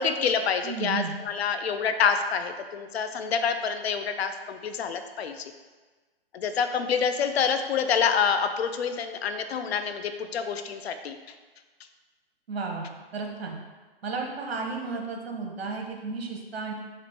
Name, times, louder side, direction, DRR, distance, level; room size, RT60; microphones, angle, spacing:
voice 1, 0.0-5.5 6.3-11.2, left 6 dB, 80° left, 8 dB, 0.5 m, -27 dB
voice 2, 0.6-1.1 12.5-12.9 13.1-13.6 14.0-16.7, right 4 dB, 70° right, 1 dB, 1.0 m, -33 dB
4.3 x 2.5 x 4.4 m, 1.3 s
hypercardioid pair, 150°, 31 cm